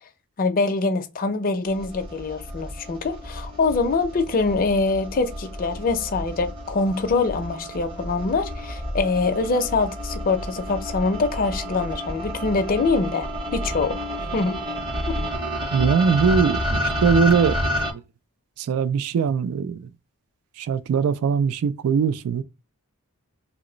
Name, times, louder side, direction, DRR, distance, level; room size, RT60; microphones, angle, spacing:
voice 1, 0.4-14.0 14.3-14.6 15.1-15.2, left 3 dB, 40° left, 0.5 m, -24 dB
sound 1, 1.7-17.9, equal, 25° right, 0.8 m, -30 dB
voice 2, 15.7-17.6 17.9-18.0 18.6-19.9 20.6-22.4, right 6 dB, 70° right, 0.3 m, -21 dB
2.9 x 2.0 x 3.7 m
head